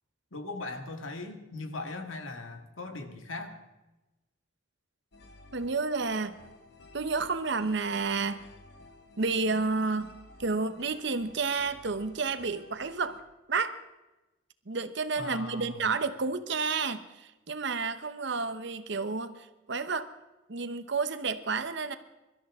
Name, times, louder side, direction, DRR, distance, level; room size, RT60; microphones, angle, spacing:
voice 1, 0.3-3.6 15.2-15.8, left 2 dB, 80° left, 6 dB, 1.8 m, -39 dB
sound 1, 5.1-13.2, left 2 dB, 55° left, 1.4 m, -54 dB
voice 2, 5.5-6.4 6.9-8.4 9.2-13.2 13.5-13.8 14.7-20.1 20.5-22.0, right 4 dB, 60° right, 10 dB, 0.9 m, -31 dB
24.0 x 13.0 x 3.7 m, 1.0 s
head